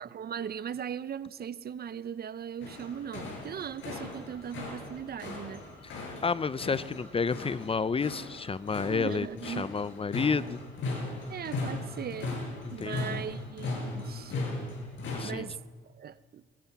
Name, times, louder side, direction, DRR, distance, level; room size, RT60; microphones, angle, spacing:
voice 1, 0.0-5.7 8.9-9.7 11.3-12.3 12.7-14.3 15.2-15.6 16.0-16.4, right 8 dB, 50° right, 0.9 m, -38 dB
sound 1, 2.6-15.2, left 2 dB, 75° left, 7.8 m, -38 dB
voice 2, 6.2-10.6 12.8-13.2 15.1-15.5, left 5 dB, 30° left, 0.7 m, -30 dB
22.5 x 21.5 x 6.0 m
cardioid pair, 90°, 20 cm